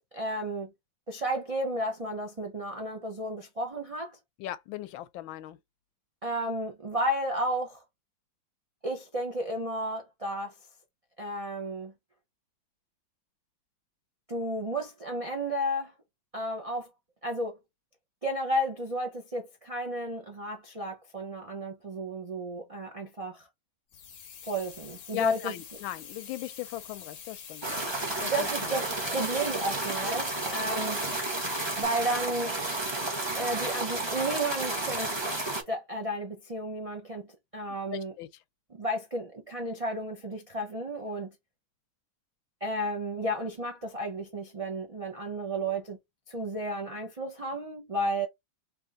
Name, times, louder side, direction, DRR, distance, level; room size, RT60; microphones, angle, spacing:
voice 1, 0.1-0.7 1.1-4.2 6.2-7.8 8.8-10.5 11.2-11.9 14.3-15.9 16.3-16.9 17.2-17.6 18.2-23.5 24.5-25.5 28.3-31.0 31.8-32.6 33.3-35.1 35.7-38.1 38.7-41.3 42.6-46.0 46.3-48.3, right 1 dB, 50° right, 0.4 m, -32 dB
voice 2, 4.4-5.6 25.1-27.8 28.2-28.7 29.1-29.2 30.4-30.6 37.9-38.3, left 13 dB, 85° left, 1.4 m, -37 dB
sound 1, 23.9-31.9, left 8 dB, 60° left, 0.9 m, -46 dB
sound 2, 27.6-35.6, right 2 dB, 20° right, 0.8 m, -32 dB
3.5 x 3.1 x 3.7 m
omnidirectional pair, 2.1 m